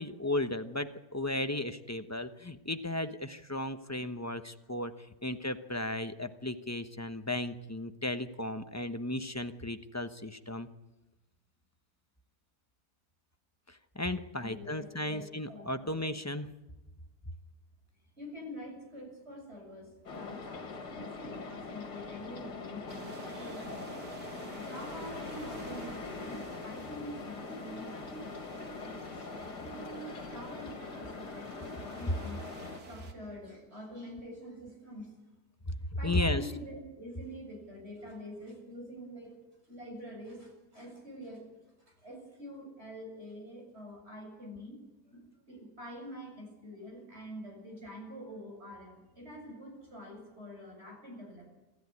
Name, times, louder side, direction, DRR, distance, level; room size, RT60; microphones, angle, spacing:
voice 1, 0.0-4.9 5.2-10.7 13.7-16.5 35.7-35.8 36.0-36.5, left 1 dB, 15° left, 8 dB, 0.8 m, -35 dB
voice 2, 14.4-16.0 18.2-24.1 24.4-32.4 32.8-35.1 36.0-39.4 39.6-41.7 42.0-44.8 45.1-45.2 45.5-51.5, equal, 40° right, 1 dB, 7.8 m, -46 dB
sound 1, 20.1-32.8, left 3 dB, 80° left, 2.6 m, -42 dB
sound 2, 22.9-33.1, right 4 dB, 85° right, 2.7 m, -51 dB
sound 3, 24.7-29.5, right 1 dB, 60° right, 3.2 m, -54 dB
27.0 x 14.0 x 9.7 m, 1.0 s
omnidirectional pair, 1.7 m